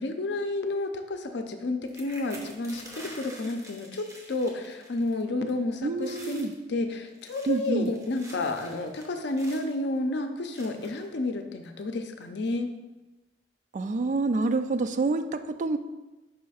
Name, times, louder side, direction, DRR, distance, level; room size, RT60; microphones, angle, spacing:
voice 1, 0.0-12.7, left 2 dB, 65° left, 6 dB, 0.6 m, -31 dB
sound 1, 1.9-5.2 5.5-5.7 6.0-6.5 7.1-9.8 10.5-11.1 11.8-11.9 12.2-12.5, right 1 dB, 20° right, 1.0 m, -47 dB
voice 2, 5.8-6.5 7.5-7.9 13.7-15.8, right 3 dB, 40° right, 10 dB, 0.3 m, -27 dB
5.5 x 3.3 x 5.5 m, 1.1 s
head